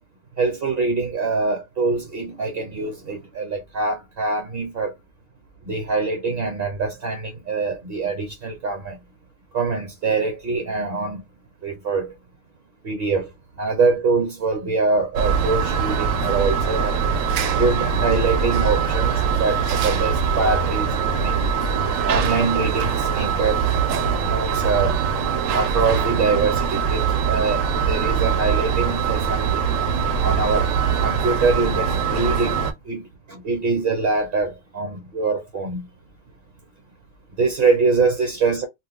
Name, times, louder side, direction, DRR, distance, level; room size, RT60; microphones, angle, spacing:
voice 1, 0.4-4.9 5.6-9.0 9.5-11.2 11.6-12.1 12.8-13.3 13.6-17.0 17.5-21.5 22.0-23.9 24.2-25.0 25.5-29.7 30.2-30.7 31.0-35.8 37.4-38.7, right 4 dB, 55° right, 1.0 m, -24 dB
sound 1, 15.2-32.7, right 6 dB, 90° right, 1.0 m, -22 dB
2.4 x 2.3 x 3.6 m
omnidirectional pair, 1.3 m